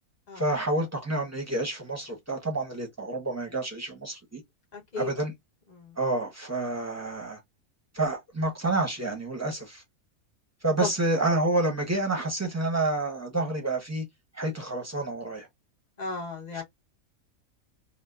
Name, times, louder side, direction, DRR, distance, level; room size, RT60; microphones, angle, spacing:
voice 1, 0.4-4.4 5.0-5.3 6.0-7.4 7.9-9.8 10.6-14.0 14.3-15.5, right 2 dB, 15° right, 0.6 m, -29 dB
voice 2, 4.7-5.1 5.7-6.0 10.8-10.9 16.0-16.6, left 4 dB, 35° left, 1.0 m, -34 dB
2.7 x 2.1 x 2.3 m
omnidirectional pair, 1.5 m